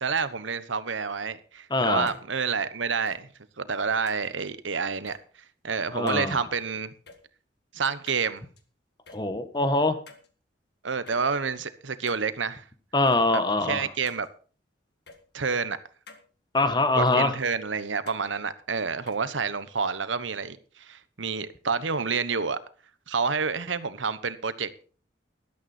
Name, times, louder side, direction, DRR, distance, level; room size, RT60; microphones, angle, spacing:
voice 1, 0.0-3.3 3.6-5.2 5.6-6.9 7.7-8.4 10.8-12.6 13.3-13.4 13.7-14.3 15.3-15.8 16.9-22.6 23.1-24.7, right 5 dB, 90° right, 1.1 m, -29 dB
voice 2, 1.7-2.1 5.9-6.4 9.1-10.0 12.9-13.8 16.5-17.3, left 2 dB, 25° left, 1.3 m, -23 dB
sound 1, 2.1-2.2 3.1-3.2 4.1-4.3 5.1-5.2 6.1-6.2 7.1-7.2 8.1-8.6 9.1-9.2 10.1-10.3 11.1-11.2 12.1-12.2 13.1-13.2 14.1-14.3 15.1-15.2 16.1-16.2 17.1-17.2 18.1-18.3 19.1-19.2, left 4 dB, 60° left, 1.9 m, -48 dB
13.0 x 12.0 x 4.3 m
head